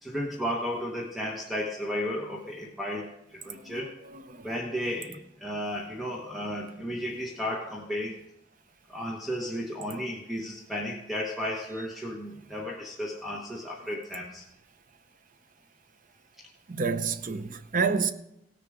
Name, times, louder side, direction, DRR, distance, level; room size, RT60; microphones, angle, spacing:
voice 1, 0.0-3.9 4.4-8.2 8.9-14.4, equal, ahead, 1.0 m, -34 dB
voice 2, 16.7-18.1, right 5 dB, 45° right, 0.7 m, -28 dB
17.0 x 6.8 x 4.9 m
head